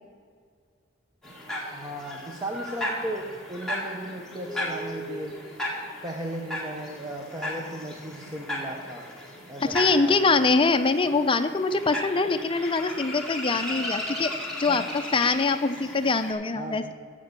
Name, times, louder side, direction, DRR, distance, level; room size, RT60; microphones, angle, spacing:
sound 1, 1.2-16.3, left 1 dB, ahead, 1.8 m, -35 dB
voice 1, 1.7-5.4 6.0-9.1 9.5-10.4 14.7-14.8 16.6-16.9, right 1 dB, 20° right, 0 dB, 0.8 m, -36 dB
voice 2, 9.6-14.3 14.6-16.9, left 3 dB, 25° left, 9 dB, 0.5 m, -24 dB
14.0 x 5.2 x 6.8 m, 2.1 s
head